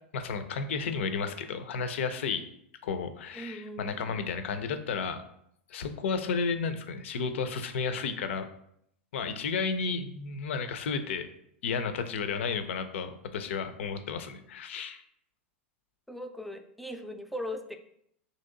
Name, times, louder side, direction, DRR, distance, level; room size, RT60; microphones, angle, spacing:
voice 1, 0.1-2.4 2.8-5.2 5.7-8.5 9.1-11.3 11.6-15.0, left 5 dB, 75° left, 9 dB, 0.4 m, -32 dB
voice 2, 3.3-4.2 16.1-17.8, equal, ahead, 6 dB, 0.3 m, -39 dB
3.0 x 2.7 x 3.8 m, 0.72 s
hypercardioid pair, 105°, 7 cm